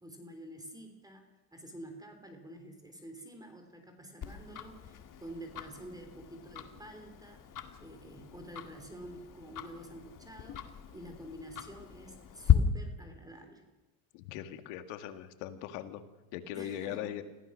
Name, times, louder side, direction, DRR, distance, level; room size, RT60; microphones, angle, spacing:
voice 1, 0.0-10.6 10.9-13.6 16.5-17.1, right 1 dB, 10° right, 5 dB, 3.5 m, -49 dB
Tick-tock, 4.2-12.5, left 11 dB, 40° left, 2.1 m, -35 dB
voice 2, 14.1-16.0 16.3-17.2, left 11 dB, 75° left, 9 dB, 2.0 m, -40 dB
25.0 x 16.5 x 6.4 m, 1.1 s
supercardioid pair, 105°, 48 cm